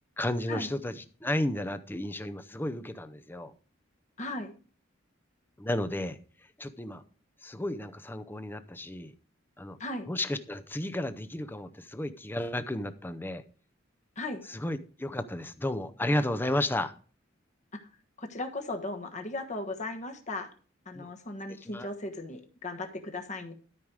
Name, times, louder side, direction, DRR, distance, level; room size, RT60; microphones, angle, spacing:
voice 1, 0.2-3.5 5.6-7.0 7.4-9.1 9.6-9.8 10.1-13.4 14.5-16.9 20.9-21.1 21.6-21.9, left 1 dB, 10° left, 0.6 m, -33 dB
voice 2, 4.2-4.5 9.8-10.1 14.2-14.4 18.2-20.5 20.8-23.5, left 2 dB, 40° left, 1.4 m, -37 dB
13.0 x 5.2 x 4.7 m
head